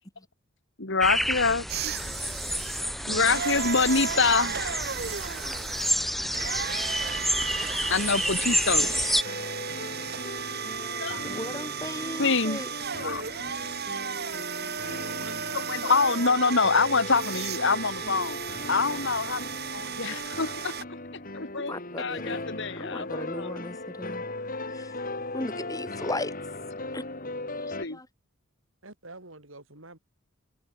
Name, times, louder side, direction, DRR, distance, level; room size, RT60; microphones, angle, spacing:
voice 1, 0.8-1.9 3.1-4.5 7.9-8.9 11.0-11.2 12.2-12.6 13.0-13.2 13.8-13.9 15.7-18.4 18.7-20.7 21.3-23.5 27.8-28.0, left 4 dB, 60° left, 2.6 m, -26 dB
sound 1, 1.0-9.2, equal, ahead, 2.0 m, -29 dB
sound 2, 1.7-20.8, right 7 dB, 50° right, 3.6 m, -35 dB
voice 2, 3.0-4.7 14.8-15.9 28.8-30.0, right 2 dB, 70° right, 6.2 m, -45 dB
sound 3, 8.7-27.8, left 2 dB, 45° left, 6.4 m, -38 dB
voice 3, 10.8-12.7 21.5-24.3 24.7-25.0 25.3-26.3 26.9-27.0 27.6-28.1, left 1 dB, 20° left, 4.7 m, -37 dB
head